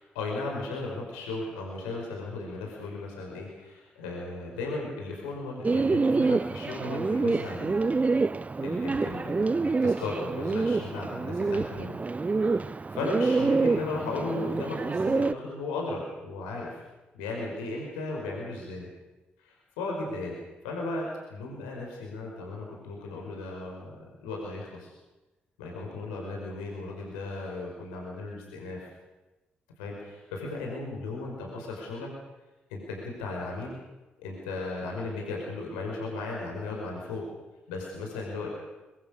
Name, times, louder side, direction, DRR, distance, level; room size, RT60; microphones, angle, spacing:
voice 1, 0.0-8.0 8.6-12.0 12.4-12.6 12.9-16.8 17.1-18.9 19.4-20.4 20.6-24.0 24.2-24.9 25.6-28.8 29.8-32.1 32.7-33.7 34.2-37.3 37.7-38.5, left 2 dB, 85° left, -1 dB, 5.2 m, -36 dB
Bird, 5.6-15.3, right 3 dB, 30° right, 0.8 m, -27 dB
24.0 x 22.5 x 6.8 m, 1.1 s
hypercardioid pair, 40°, 5 cm